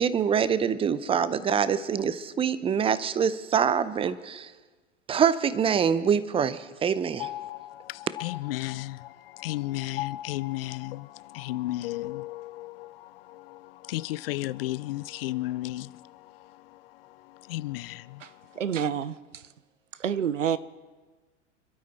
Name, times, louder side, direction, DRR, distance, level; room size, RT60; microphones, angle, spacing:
voice 1, 0.0-4.5 5.1-7.3, right 7 dB, 15° right, 0.7 m, -25 dB
voice 2, 7.2-16.8 17.3-18.2, left 17 dB, 50° left, 0.5 m, -34 dB
voice 3, 18.6-19.2 20.0-20.6, right 8 dB, 85° right, 0.7 m, -27 dB
27.0 x 12.5 x 4.1 m
figure-of-eight pair, 95°, 36 cm